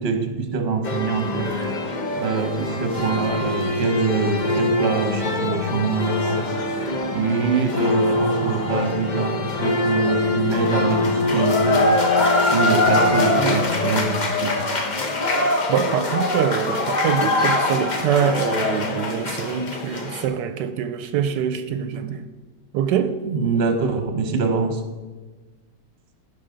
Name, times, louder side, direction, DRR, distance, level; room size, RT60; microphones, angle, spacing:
voice 1, 0.0-1.6 2.2-6.4 7.1-11.8 12.4-14.6 23.2-24.8, right 4 dB, 40° right, 1.2 m, -24 dB
sound 1, 0.8-20.3, left 2 dB, 40° left, 0.6 m, -23 dB
voice 2, 15.7-22.3 22.7-23.2, right 8 dB, 80° right, 1.2 m, -24 dB
15.5 x 5.9 x 3.8 m
omnidirectional pair, 1.9 m